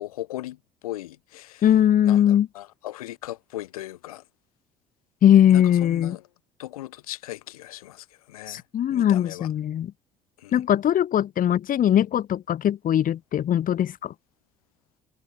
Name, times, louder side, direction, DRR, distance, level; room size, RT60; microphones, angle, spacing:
voice 1, 0.0-1.7 2.0-4.2 5.5-6.2 6.6-8.6 8.9-9.5 10.4-10.6, left 15 dB, 90° left, 1.1 m, -38 dB
voice 2, 1.6-2.5 5.2-6.2 8.5-9.9 10.5-14.1, left 10 dB, 50° left, 1.1 m, -20 dB
hypercardioid pair, 55°, 18 cm